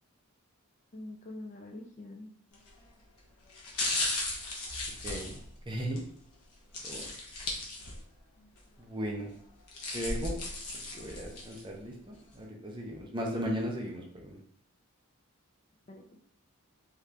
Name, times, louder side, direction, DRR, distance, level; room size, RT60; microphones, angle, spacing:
voice 1, 0.9-2.3 15.9-16.2, left 1 dB, 30° left, 2 dB, 0.3 m, -45 dB
sound 1, 2.5-2.8 3.5-6.0 6.7-8.2 8.6-8.7 9.5-11.6 12.1-12.2, left 2 dB, 85° left, 0.8 m, -36 dB
voice 2, 5.0-5.4 5.7-6.0 6.8-7.1 8.8-9.3 9.9-10.4 10.7-14.4, equal, 20° right, 0 dB, 0.5 m, -36 dB
2.8 x 2.5 x 3.3 m, 0.63 s
head